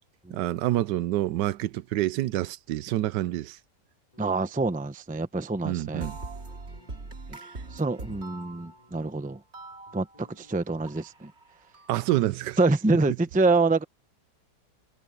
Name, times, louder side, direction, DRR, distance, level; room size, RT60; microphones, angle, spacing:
voice 1, 0.3-3.6 5.6-6.2 11.9-12.6, right 15 dB, 85° right, 1.2 m, -27 dB
sound 1, 4.1-5.0 5.5-6.9 7.4-9.3 9.6-10.7, left 2 dB, 20° left, 4.9 m, -60 dB
voice 2, 4.2-6.1 7.3-7.4 7.7-9.4 9.9-11.3 12.6-13.8, right 3 dB, 10° right, 0.3 m, -26 dB
sound 2, 5.9-9.1 9.5-10.6 10.9-12.2, right 3 dB, 40° right, 2.6 m, -42 dB
omnidirectional pair, 1.8 m